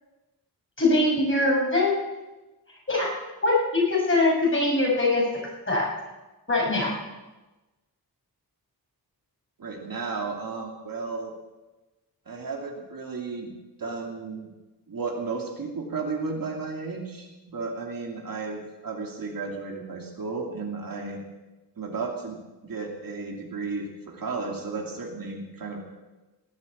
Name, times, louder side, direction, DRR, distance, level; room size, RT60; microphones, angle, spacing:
voice 1, 0.8-1.9 2.9-3.1 3.4-5.2 5.7-5.9 6.5-6.9, left 2 dB, 30° left, -3 dB, 6.5 m, -22 dB
voice 2, 9.6-11.3 12.3-13.5 13.8-14.5 14.9-21.2 21.8-22.4 22.6-25.8, right 4 dB, 60° right, 1 dB, 2.7 m, -33 dB
18.5 x 8.3 x 8.5 m, 1.1 s
wide cardioid pair, 135°, 38 cm